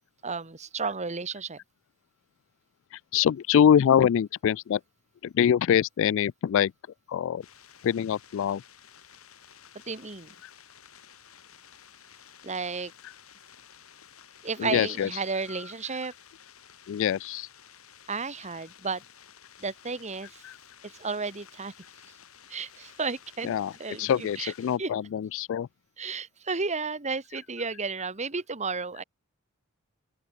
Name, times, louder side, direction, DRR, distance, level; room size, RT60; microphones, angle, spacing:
voice 1, 0.2-1.6 9.9-10.3 12.4-12.9 14.4-16.1 18.1-19.0 19.6-20.4 21.0-21.7 22.5-23.6 23.8-24.5 24.8-24.9 26.0-29.0, right 4 dB, 35° right, 1.7 m, -32 dB
voice 2, 2.9-4.8 5.2-6.7 7.1-7.5 7.8-8.6 10.4-10.5 14.6-15.1 15.5-15.6 16.9-17.5 20.4-20.6 23.4-23.7 24.0-25.7, left 8 dB, 65° left, 0.3 m, -24 dB
sound 1, 7.4-24.8, left 8 dB, 85° left, 4.2 m, -53 dB
open air
head